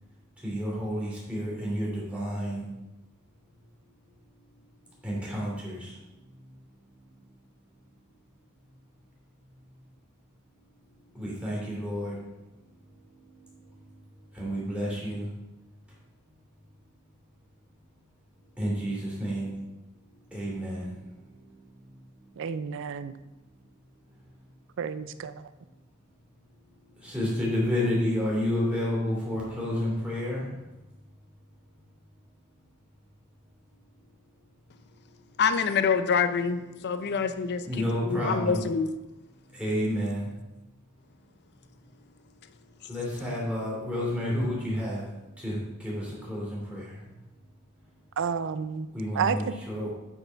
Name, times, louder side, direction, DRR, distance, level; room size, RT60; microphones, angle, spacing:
voice 1, 0.4-2.7 5.0-6.0 11.1-12.2 13.7-13.8 14.3-15.3 18.6-19.5 20.3-21.0 27.0-30.4 37.6-38.6 39.5-40.3 42.9-45.1 45.4-47.0 48.9-49.9, equal, 5° right, -6 dB, 2.8 m, -30 dB
voice 2, 22.4-23.1 24.8-25.5 48.2-48.9 49.1-49.4, right 6 dB, 60° right, 13 dB, 0.4 m, -30 dB
voice 3, 35.4-37.6 38.1-38.9, left 6 dB, 50° left, 10 dB, 0.5 m, -26 dB
8.9 x 4.4 x 4.5 m, 1.0 s
head